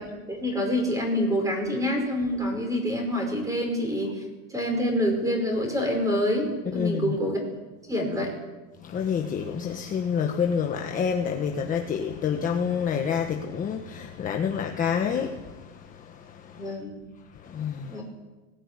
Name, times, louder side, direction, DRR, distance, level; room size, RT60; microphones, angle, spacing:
voice 1, 0.0-4.2 4.5-7.4 7.9-8.4 16.6-17.0 17.9-18.0, equal, 10° right, 5.3 m, -27 dB
voice 2, 6.7-7.1 8.8-16.7 17.4-18.0, left 7 dB, 20° left, 1.3 m, -28 dB
20.0 x 17.5 x 9.9 m
supercardioid pair, 165°, 39 cm